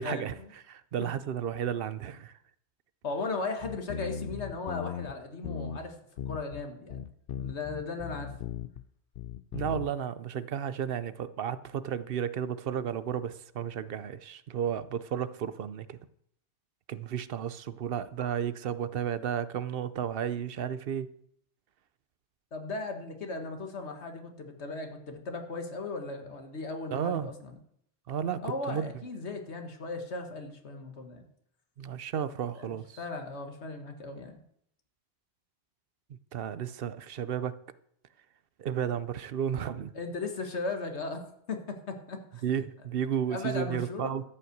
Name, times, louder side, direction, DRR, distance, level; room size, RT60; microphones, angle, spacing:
voice 1, 0.0-2.3 9.5-16.0 16.9-21.1 26.9-27.3 28.1-28.4 28.7-28.9 31.8-33.0 36.3-37.6 38.6-39.9 42.4-44.2, right 8 dB, 60° right, 0.8 m, -33 dB
voice 2, 3.0-6.0 6.3-7.0 7.4-8.3 22.5-27.5 28.4-31.2 32.6-34.4 40.0-41.2 41.5-42.4 43.3-44.2, left 3 dB, 75° left, 1.8 m, -37 dB
sound 1, 3.6-5.1 5.4-5.8 6.2-6.6 6.9-8.8 9.2-9.9, left 8 dB, 60° left, 0.7 m, -38 dB
13.0 x 5.7 x 7.8 m
omnidirectional pair, 1.1 m